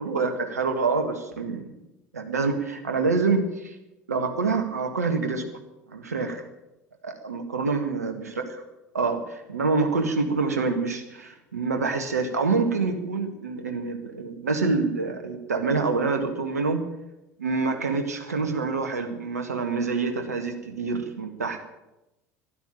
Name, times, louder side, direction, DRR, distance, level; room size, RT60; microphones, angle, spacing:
voice 1, 0.0-1.7 2.1-3.7 4.1-5.4 5.9-6.4 7.0-8.3 8.9-16.8 17.4-21.6, right 4 dB, 80° right, 6 dB, 1.7 m, -26 dB
12.0 x 11.5 x 9.0 m, 0.93 s
figure-of-eight pair, 70°, 8 cm